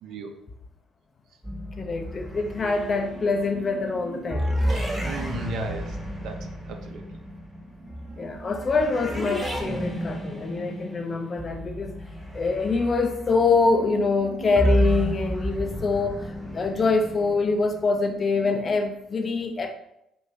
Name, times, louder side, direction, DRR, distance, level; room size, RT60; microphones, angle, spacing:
sound 1, 1.4-18.9, equal, ahead, 0.7 m, -31 dB
voice 1, 1.8-4.4 8.2-11.9 12.3-19.7, left 4 dB, 40° left, 0.4 m, -25 dB
voice 2, 4.7-7.0, right 5 dB, 60° right, 0.4 m, -37 dB
2.6 x 2.2 x 3.1 m
figure-of-eight pair, 50°, 0 cm